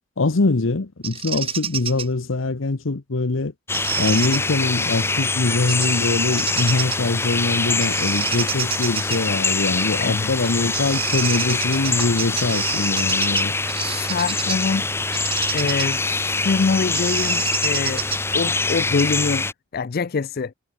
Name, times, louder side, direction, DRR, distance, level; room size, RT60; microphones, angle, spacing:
voice 1, 0.2-3.5 4.0-13.5 15.6-15.7, left 3 dB, 80° left, 1.0 m, -23 dB
Bird vocalization bird call bird song, 1.0-2.1 3.7-4.4 5.7-6.0 6.3-7.1 7.8-9.2 10.4-10.5 10.7-14.7 15.1-18.4, right 8 dB, 30° right, 1.5 m, -29 dB
sound 1, 3.7-19.5, left 3 dB, 10° left, 0.9 m, -24 dB
voice 2, 10.0-10.7 13.8-14.9 15.5-18.0 18.3-20.5, left 4 dB, 50° left, 0.5 m, -25 dB
head